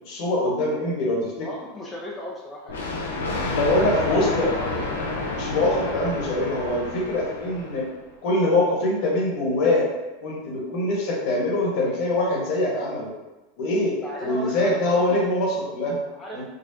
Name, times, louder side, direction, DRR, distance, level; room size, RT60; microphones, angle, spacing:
voice 1, 0.0-1.5 3.5-4.5 5.4-7.8 8.2-9.9 10.2-13.1 13.6-14.0 14.2-16.0 16.3-16.4, left 1 dB, 60° left, -3 dB, 1.3 m, -23 dB
voice 2, 1.4-3.0 3.6-4.9 14.0-15.2 16.1-16.4, left 1 dB, 20° left, -3 dB, 0.5 m, -36 dB
Thunder, 2.7-8.0, left 2 dB, 90° left, 0.6 m, -29 dB
4.0 x 2.4 x 2.7 m, 1.1 s
hypercardioid pair, 105°, 0 cm